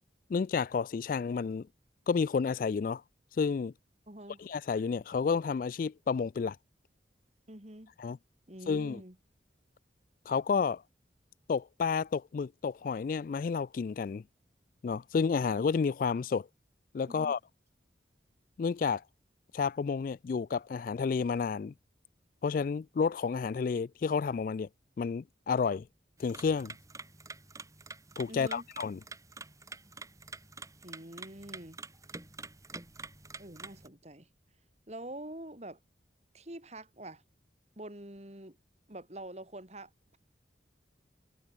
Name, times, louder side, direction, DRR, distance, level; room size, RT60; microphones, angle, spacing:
voice 1, 0.3-1.7 2.1-3.0 3.4-3.7 4.4-6.6 8.0-8.2 8.7-9.0 10.3-10.8 11.5-14.2 14.8-16.5 16.9-17.4 18.6-19.0 19.5-21.7 22.4-24.7 25.0-25.9 26.2-26.7 28.2-29.0, left 5 dB, 50° left, 0.3 m, -30 dB
voice 2, 4.1-4.4 7.5-7.9 8.5-9.2 17.1-17.3 28.3-28.7 30.8-31.8 33.4-34.3 34.9-35.8 36.3-37.2 37.8-38.6 38.9-40.2, right 1 dB, 35° right, 3.4 m, -46 dB
sound 1, 26.2-33.9, right 3 dB, 20° right, 3.3 m, -47 dB
head